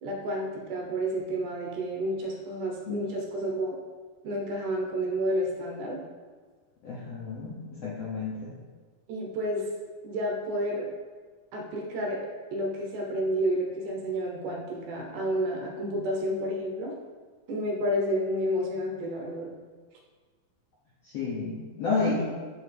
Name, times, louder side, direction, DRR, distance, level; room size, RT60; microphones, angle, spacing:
voice 1, 0.0-3.8 4.2-6.0 9.1-9.6 10.0-10.9 11.5-12.2 12.5-16.9 17.5-19.5, equal, 70° right, -1 dB, 2.3 m, -30 dB
voice 2, 6.8-8.5 21.0-22.2, left 4 dB, 70° left, -7 dB, 1.5 m, -31 dB
10.0 x 4.4 x 3.4 m, 1.5 s
omnidirectional pair, 4.1 m